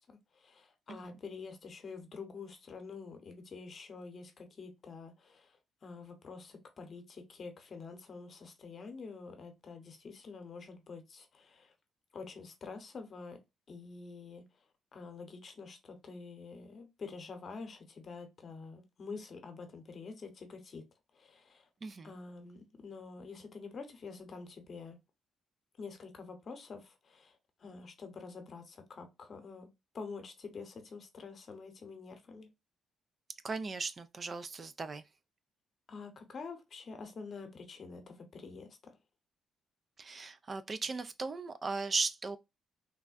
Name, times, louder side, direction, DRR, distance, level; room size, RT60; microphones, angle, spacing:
voice 1, 0.0-5.6 5.8-11.7 12.1-13.4 13.7-14.5 14.9-20.8 21.1-21.7 22.0-25.0 25.8-29.7 29.9-32.5 35.9-38.8, left 4 dB, 50° left, 0.8 m, -47 dB
voice 2, 21.8-22.1 33.4-35.0 40.0-42.4, right 4 dB, 35° right, 0.3 m, -37 dB
3.4 x 2.1 x 2.4 m
cardioid pair, 90°, 0 cm